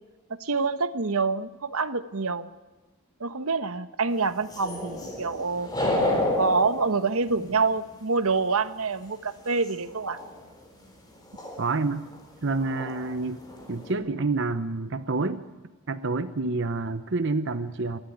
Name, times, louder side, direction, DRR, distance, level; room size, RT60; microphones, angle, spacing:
voice 1, 0.4-2.5 3.2-5.7 6.4-10.2, right 4 dB, 80° right, 11 dB, 1.2 m, -26 dB
sound 1, 4.4-7.9 9.6-9.7 10.0-10.4 11.3-11.6 12.1-12.2 12.6-13.1 13.4-13.9, left 1 dB, 20° left, 4.1 m, -30 dB
voice 2, 11.6-12.0 12.4-13.4 13.7-15.5 15.9-18.0, right 3 dB, 55° right, 11 dB, 0.8 m, -28 dB
26.5 x 12.5 x 9.4 m, 1.2 s
head